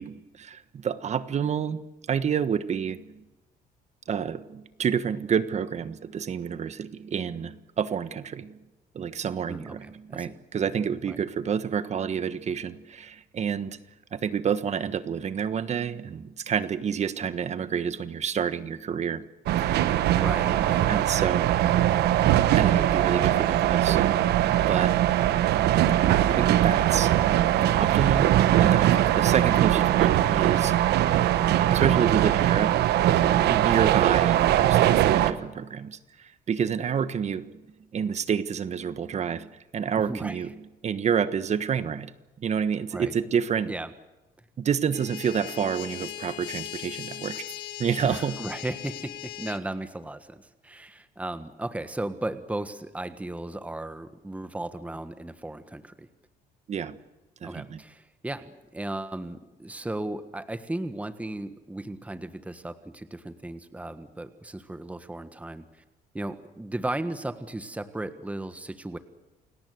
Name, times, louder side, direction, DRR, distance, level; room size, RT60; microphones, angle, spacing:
voice 1, 0.0-1.8 2.1-3.1 4.1-8.6 8.9-13.8 14.1-19.2 19.6-20.2 20.9-21.5 22.5-24.0 24.7-25.0 26.3-27.1 27.6-28.3 28.6-30.8 31.7-32.8 33.4-37.5 37.9-39.5 39.7-40.5 40.8-42.1 42.4-43.7 44.6-47.5 47.8-48.3 56.7-57.0 57.4-57.8, right 7 dB, 40° right, 13 dB, 1.3 m, -29 dB
voice 2, 9.5-10.4 11.0-11.2 20.1-20.9 40.1-40.4 42.9-43.2 43.7-43.9 48.0-56.1 57.4-65.7 66.1-69.0, right 1 dB, 10° right, 10 dB, 1.5 m, -35 dB
sound 1, 19.5-35.3, right 12 dB, 75° right, 1.3 m, -21 dB
sound 2, 44.9-49.6, left 14 dB, 80° left, 1.9 m, -39 dB
29.0 x 18.0 x 8.0 m, 1.1 s
cardioid pair, 110°, 17 cm